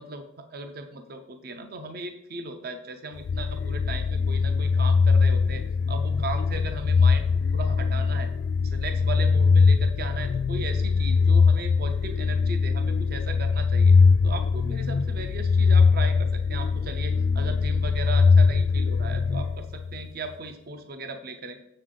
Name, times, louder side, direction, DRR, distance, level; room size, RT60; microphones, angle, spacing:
voice 1, 0.0-8.3 8.6-13.9 14.2-21.6, right 3 dB, 50° right, 7 dB, 0.5 m, -37 dB
sound 1, 3.2-20.1, left 5 dB, 60° left, 0.3 m, -22 dB
7.3 x 6.5 x 3.8 m, 0.82 s
head